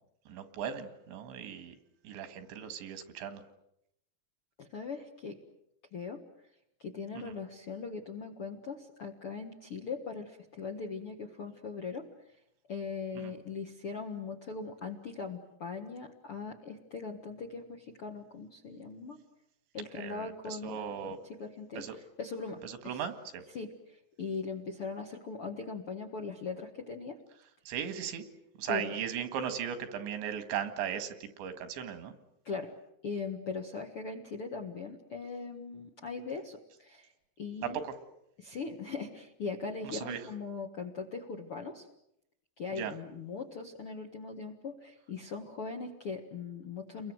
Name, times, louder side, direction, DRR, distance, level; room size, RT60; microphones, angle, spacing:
voice 1, 0.3-1.8 2.0-3.4 7.2-7.3 13.2-13.3 19.9-21.2 21.8-22.0 22.6-23.4 27.7-28.2 28.6-32.2 37.6-37.9 39.8-40.2 42.8-42.9, right 8 dB, 80° right, 9 dB, 4.1 m, -37 dB
voice 2, 4.6-5.4 5.9-6.2 6.8-12.1 12.7-19.2 19.7-21.1 21.4-23.0 23.5-27.2 28.7-29.0 32.4-32.7 33.0-37.1 37.4-37.8 38.4-41.9 42.6-47.1, left 4 dB, 60° left, 3 dB, 1.5 m, -40 dB
29.5 x 22.5 x 7.9 m, 0.79 s
omnidirectional pair, 5.1 m